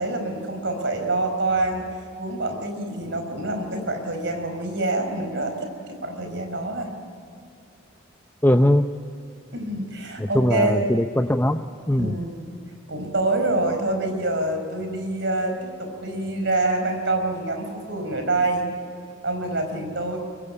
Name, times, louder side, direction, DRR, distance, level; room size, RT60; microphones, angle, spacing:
voice 1, 0.0-1.9 2.2-6.9 9.5-10.9 12.0-12.5 12.9-18.7 19.2-20.2, right 2 dB, 60° right, 5 dB, 4.9 m, -26 dB
voice 2, 8.4-8.9 10.2-11.6 11.9-12.2, left 1 dB, 10° left, 6 dB, 0.6 m, -20 dB
24.0 x 23.5 x 9.8 m, 2.6 s
head